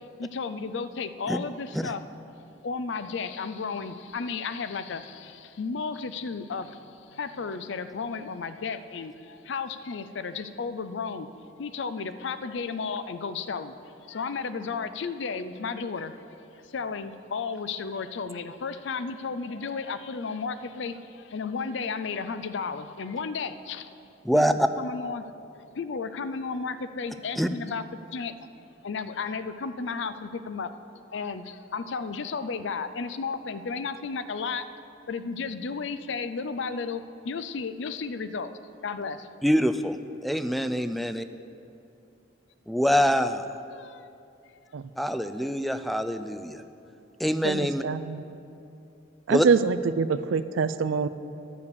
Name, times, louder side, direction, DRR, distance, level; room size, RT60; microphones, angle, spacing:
voice 1, 0.2-2.0 2.6-11.3 11.6-23.9 24.3-25.3 25.7-27.8 28.1-28.3 28.8-30.7 31.1-34.7 35.1-38.5 38.8-39.3 43.7-44.1, left 5 dB, 65° left, 12 dB, 0.5 m, -33 dB
voice 2, 24.2-24.7 27.4-27.5 39.4-40.0 40.2-41.2 42.7-43.6 45.0-46.6 47.2-47.8 49.3-49.5, equal, ahead, 10 dB, 0.3 m, -25 dB
voice 3, 47.4-48.2 49.3-51.1, right 5 dB, 85° right, 14 dB, 0.4 m, -25 dB
10.5 x 7.0 x 6.8 m, 2.6 s
head